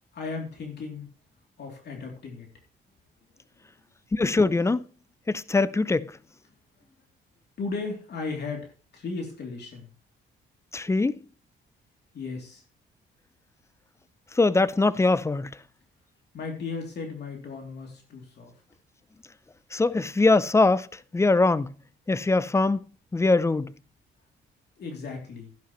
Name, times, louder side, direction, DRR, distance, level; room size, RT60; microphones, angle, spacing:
voice 1, 0.1-1.1 1.6-2.5 7.6-9.9 12.1-12.6 16.3-18.5 24.8-25.5, left 4 dB, 55° left, 3.0 m, -35 dB
voice 2, 4.1-4.8 5.3-6.1 10.7-11.2 14.4-15.5 19.7-20.9 21.1-21.7 22.1-22.8 23.1-23.7, left 3 dB, 15° left, 0.5 m, -22 dB
11.5 x 11.0 x 3.1 m
cardioid pair, 90°, 20 cm